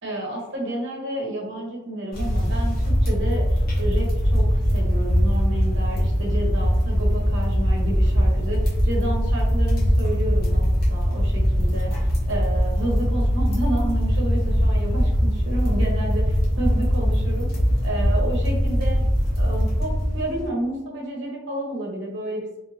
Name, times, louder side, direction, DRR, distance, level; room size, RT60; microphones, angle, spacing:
voice 1, 0.0-11.9 12.3-17.5 17.8-19.0 19.3-22.7, right 1 dB, 55° right, -2 dB, 1.0 m, -30 dB
sound 1, 2.1-20.5, equal, 45° left, 1.0 m, -21 dB
3.6 x 2.6 x 2.8 m, 0.93 s
head